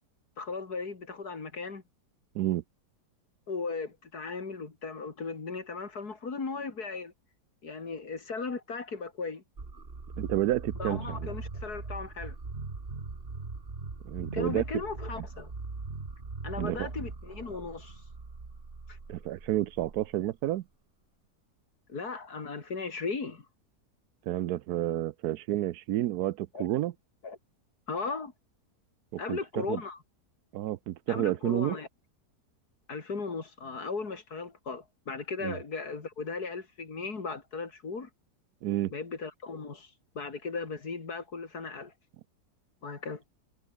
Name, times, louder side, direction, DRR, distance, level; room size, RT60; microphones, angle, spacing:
voice 1, 0.4-1.8 3.5-7.1 7.6-9.4 10.8-12.4 14.3-15.5 16.4-18.0 18.9-19.0 21.9-23.5 26.5-26.7 27.2-27.4 27.9-28.3 29.2-30.0 31.1-31.9 32.9-38.1 38.9-41.9 42.8-43.2, left 4 dB, 70° left, 3.4 m, -37 dB
sound 1, 9.6-20.4, right 3 dB, 35° right, 2.3 m, -41 dB
voice 2, 10.2-11.3 14.0-14.6 16.6-16.9 19.1-20.6 24.3-26.9 29.1-29.8 30.5-31.8 35.4-35.6 38.6-38.9, right 14 dB, 75° right, 1.1 m, -30 dB
omnidirectional pair, 1.7 m